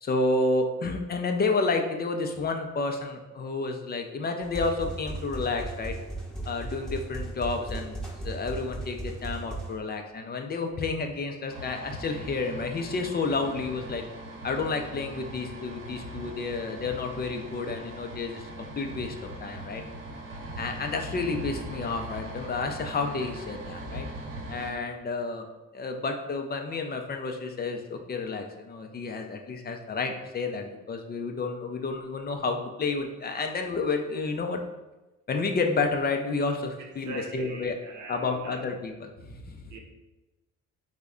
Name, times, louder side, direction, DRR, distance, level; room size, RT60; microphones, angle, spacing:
voice 1, 0.0-6.0 6.4-8.0 8.2-14.0 14.4-19.8 20.6-24.1 24.5-25.4 25.7-34.6 35.3-37.8 38.1-39.6, left 3 dB, 35° left, 4 dB, 0.4 m, -30 dB
sound 1, 4.4-9.7, right 2 dB, ahead, 0.8 m, -36 dB
sound 2, 11.5-24.7, right 1 dB, 45° right, 0.9 m, -40 dB
voice 2, 36.8-38.7 39.7-39.8, right 3 dB, 75° right, 2 dB, 0.7 m, -41 dB
3.3 x 2.1 x 3.6 m, 1.1 s
cardioid pair, 90°, 30 cm